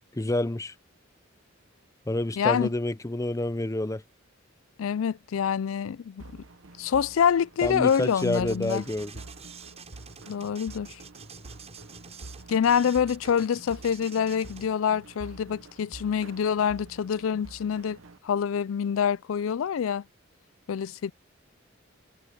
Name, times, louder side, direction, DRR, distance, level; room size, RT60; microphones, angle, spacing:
voice 1, 0.1-0.7 2.1-4.0 7.6-9.2, left 1 dB, 15° left, 0.6 m, -28 dB
voice 2, 2.4-2.7 4.8-6.2 6.8-8.8 10.3-11.0 12.5-18.0 18.2-20.0 20.7-21.1, left 7 dB, 85° left, 0.4 m, -26 dB
sound 1, 6.2-18.2, right 2 dB, 75° right, 1.1 m, -48 dB
sound 2, 7.6-14.7, right 5 dB, 35° right, 7.8 m, -47 dB
head